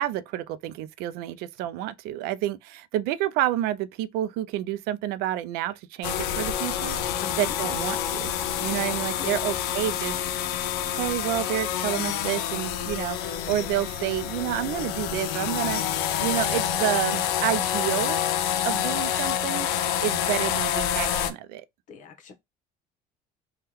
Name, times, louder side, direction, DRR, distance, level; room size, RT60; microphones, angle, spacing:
voice 1, 0.0-8.3 8.6-10.1 10.9-15.8 16.2-18.2 18.6-19.7 20.0-21.6, right 13 dB, 80° right, 0.4 m, -29 dB
sound 1, 6.0-21.3, left 9 dB, 80° left, 0.5 m, -27 dB
voice 2, 7.2-7.5 8.9-9.4 21.9-22.3, left 6 dB, 55° left, 0.9 m, -41 dB
3.5 x 2.3 x 2.9 m
cardioid pair, 120°, 16 cm